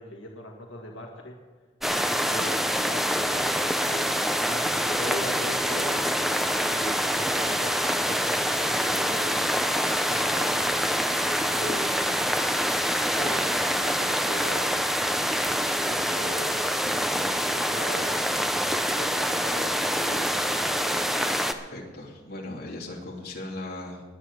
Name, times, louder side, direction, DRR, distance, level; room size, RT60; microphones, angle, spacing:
voice 1, 0.0-1.4 1.9-6.0 6.6-9.4 10.1-10.6 11.2-11.9 13.2-14.7 15.6-16.6 17.5-21.0, left 1 dB, 85° left, 0 dB, 1.8 m, -40 dB
sound 1, 1.8-21.5, equal, ahead, 0.6 m, -26 dB
voice 2, 21.7-24.0, left 2 dB, 55° left, -2 dB, 2.8 m, -38 dB
21.0 x 7.8 x 4.9 m, 1.5 s
head